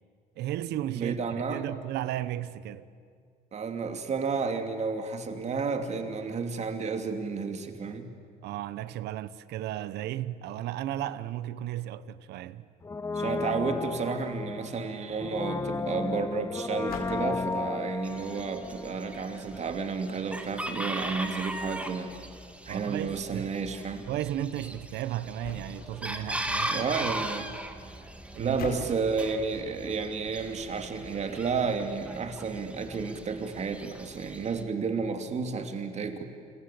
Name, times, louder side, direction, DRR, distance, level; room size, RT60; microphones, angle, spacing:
voice 1, 0.4-1.2 1.5-2.9 8.4-12.7 22.7-23.6 24.1-26.8 28.3-28.6, right 12 dB, 80° right, 1.1 m, -34 dB
voice 2, 0.9-1.6 3.5-8.1 13.1-22.1 22.7-24.1 26.7-27.5 28.4-36.2, right 5 dB, 40° right, 2.8 m, -31 dB
Brass instrument, 12.8-19.7 19.9-20.0, left 3 dB, 15° left, 0.7 m, -34 dB
sound 1, 15.7-31.9, left 5 dB, 65° left, 4.4 m, -49 dB
Chicken rooster, 18.0-34.6, right 1 dB, 5° right, 2.3 m, -39 dB
29.5 x 23.0 x 8.6 m
cardioid pair, 110°, 17 cm